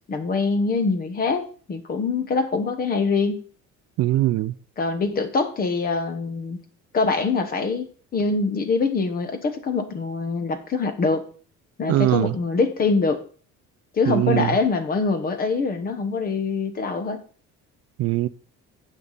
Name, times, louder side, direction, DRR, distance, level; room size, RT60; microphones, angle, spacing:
voice 1, 0.1-3.4 4.8-6.6 6.9-11.2 11.8-13.2 13.9-17.2, left 4 dB, 30° left, 1.1 m, -24 dB
voice 2, 4.0-4.5 11.9-12.3 14.1-14.5 18.0-18.3, right 15 dB, 55° right, 0.4 m, -21 dB
9.4 x 7.5 x 4.0 m
cardioid pair, 165°, 29 cm